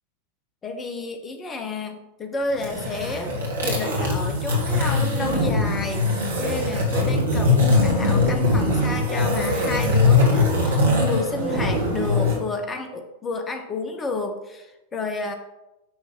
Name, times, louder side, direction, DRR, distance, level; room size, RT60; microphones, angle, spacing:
voice 1, 0.6-3.3 3.6-6.1 6.4-15.4, left 3 dB, 20° left, 5 dB, 1.0 m, -31 dB
sound 1, 2.5-12.4, left 2 dB, 70° right, 2.1 m, -21 dB
9.5 x 3.5 x 5.9 m, 0.96 s
figure-of-eight pair, 90°, 0 cm